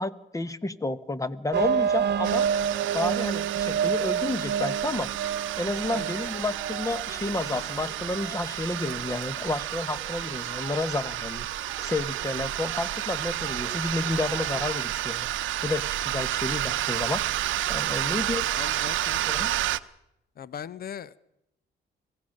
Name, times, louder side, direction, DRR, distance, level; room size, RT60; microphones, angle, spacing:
voice 1, 0.0-2.5 2.9-5.1 5.6-11.5 11.8-15.3 15.6-17.2 17.7-18.5 19.3-19.5, left 2 dB, 15° left, 15 dB, 1.1 m, -31 dB
sound 1, 1.5-17.0, right 7 dB, 60° right, 1.1 m, -32 dB
sound 2, 2.2-19.8, right 14 dB, 80° right, 0.8 m, -31 dB
sound 3, 4.9-15.0, right 4 dB, 20° right, 1.6 m, -45 dB
voice 2, 18.5-19.3 20.4-21.2, left 8 dB, 50° left, 19 dB, 0.8 m, -39 dB
25.0 x 16.5 x 6.5 m, 0.83 s
cardioid pair, 90°, 20 cm